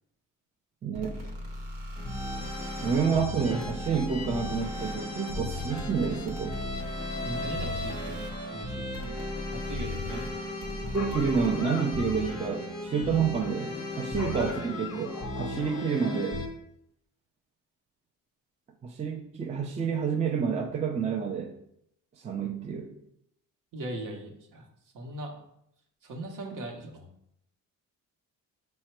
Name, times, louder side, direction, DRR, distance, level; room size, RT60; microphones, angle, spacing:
voice 1, 0.8-1.2 2.8-6.6 10.9-16.4 18.8-21.5 22.2-22.9, right 6 dB, 20° right, 3 dB, 0.3 m, -29 dB
sound 1, 0.9-11.6, equal, 90° right, 1.0 m, -40 dB
sound 2, 2.0-16.5, left 2 dB, 15° left, 0.8 m, -36 dB
voice 2, 7.2-9.2 9.5-10.3 14.1-14.5 23.7-24.7 24.9-25.3 26.0-27.1, right 1 dB, 65° right, 3 dB, 0.9 m, -39 dB
sound 3, 10.9-12.3 14.1-15.9, left 6 dB, 45° left, 0.5 m, -41 dB
5.5 x 2.1 x 4.3 m, 0.75 s
cardioid pair, 145°, 34 cm